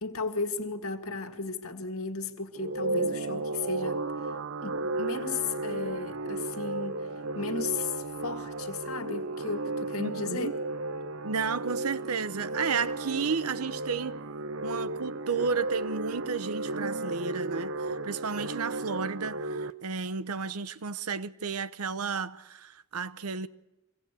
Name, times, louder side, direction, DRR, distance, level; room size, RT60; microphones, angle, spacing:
voice 1, 0.0-4.0 4.6-7.1 7.3-10.5, left 4 dB, 75° left, 1.8 m, -35 dB
sound 1, 2.5-19.7, right 2 dB, 60° right, 0.8 m, -34 dB
voice 2, 10.0-10.5 11.2-14.1 14.6-23.5, right 5 dB, 85° right, 0.8 m, -32 dB
25.0 x 17.5 x 8.3 m
head